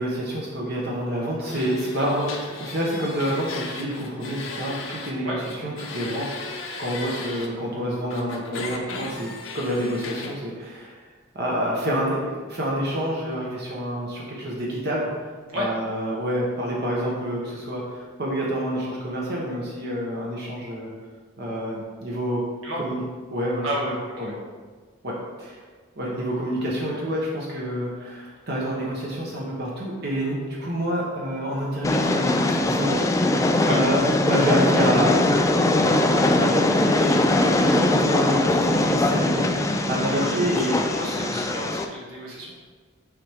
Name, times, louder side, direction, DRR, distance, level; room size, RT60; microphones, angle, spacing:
voice 1, 0.0-2.3 2.6-9.3 9.5-11.0 11.3-15.1 15.5-20.9 21.4-22.4 22.8-23.0 23.3-24.3 25.0-25.6 26.0-34.0 34.2-35.3 36.1-40.8, equal, 50° right, -4 dB, 1.0 m, -28 dB
sound 1, 1.5-5.1 5.4-7.5 8.1-10.3, left 3 dB, 70° left, 0.9 m, -36 dB
voice 2, 23.6-24.0 33.6-33.8 40.1-42.5, equal, 85° right, -5 dB, 2.0 m, -31 dB
Train, 31.8-41.8, left 2 dB, 15° left, 0.3 m, -21 dB
6.9 x 4.6 x 3.5 m, 1.5 s
head